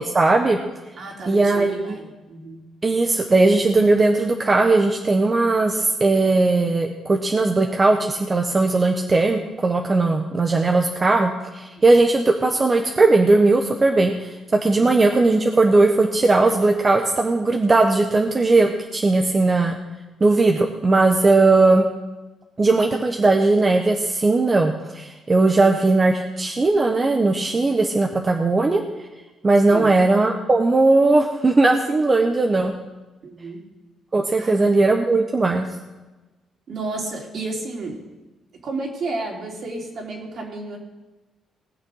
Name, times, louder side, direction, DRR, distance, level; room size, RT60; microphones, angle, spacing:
voice 1, 0.1-0.6 1.3-2.0 2.8-14.3 14.6-19.8 20.2-21.9 22.6-28.8 29.4-32.7 34.1-35.6, right 3 dB, 30° right, 2 dB, 1.2 m, -18 dB
voice 2, 1.0-2.6 14.8-14.9 19.2-19.3 25.5-25.7 29.7-29.9 33.2-33.6 34.4-34.7 36.7-38.0 38.6-40.8, right 3 dB, 60° right, -1 dB, 3.4 m, -32 dB
19.0 x 6.6 x 6.5 m, 1.1 s
cardioid pair, 90°, 0 cm